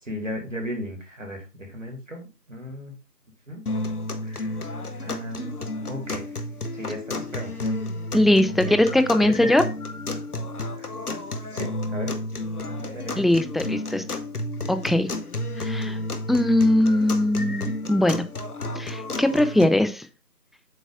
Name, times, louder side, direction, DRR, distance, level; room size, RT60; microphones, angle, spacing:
voice 1, 0.0-3.0 3.5-3.6 4.2-6.4 6.7-7.7 8.7-8.9 9.2-9.5 10.8-10.9 11.5-12.1 12.8-13.2, equal, 50° right, 2 dB, 2.2 m, -36 dB
sound 1, 3.7-19.7, left 2 dB, 65° left, 0.9 m, -31 dB
voice 2, 8.1-9.6 13.2-14.0 14.7-15.1 15.6-16.0 16.3-18.3 18.8-20.1, left 1 dB, ahead, 9 dB, 0.4 m, -20 dB
7.9 x 5.8 x 2.4 m, 0.31 s
figure-of-eight pair, 165°, 49 cm